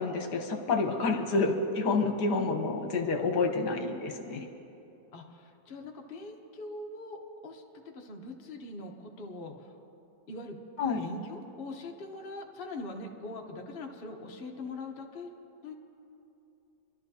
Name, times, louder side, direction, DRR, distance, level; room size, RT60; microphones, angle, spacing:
voice 1, 0.0-4.5 10.8-11.0, left 3 dB, 75° left, 4 dB, 1.5 m, -29 dB
voice 2, 2.3-2.6 5.1-7.6 7.9-9.8 10.3-10.6 11.0-15.3 15.6-15.7, left 2 dB, 40° left, 2 dB, 1.0 m, -42 dB
26.0 x 12.0 x 2.8 m, 2.8 s
omnidirectional pair, 1.8 m